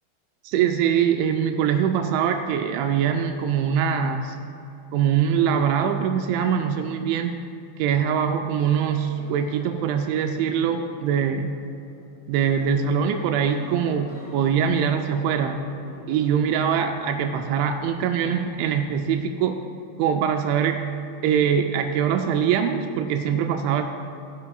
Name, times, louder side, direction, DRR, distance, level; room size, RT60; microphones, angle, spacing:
voice 1, 0.4-4.4 4.9-7.3 7.8-11.6 12.3-15.6 16.1-19.6 20.0-20.9 21.2-23.8, right 8 dB, 85° right, 5 dB, 2.9 m, -23 dB
sound 1, 8.6-19.1, left 1 dB, 55° left, 0.5 m, -44 dB
16.0 x 11.0 x 2.3 m, 2.7 s
omnidirectional pair, 5.3 m